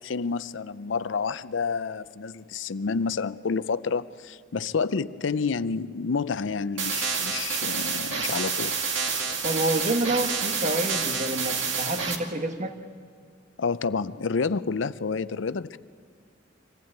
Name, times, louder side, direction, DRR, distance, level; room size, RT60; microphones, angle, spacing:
voice 1, 0.0-8.8 13.6-15.8, left 5 dB, 80° left, 0.5 m, -29 dB
sound 1, 6.8-12.2, right 5 dB, 75° right, 2.2 m, -28 dB
voice 2, 9.3-12.7, right 2 dB, 40° right, 1.4 m, -28 dB
25.0 x 15.5 x 8.8 m
head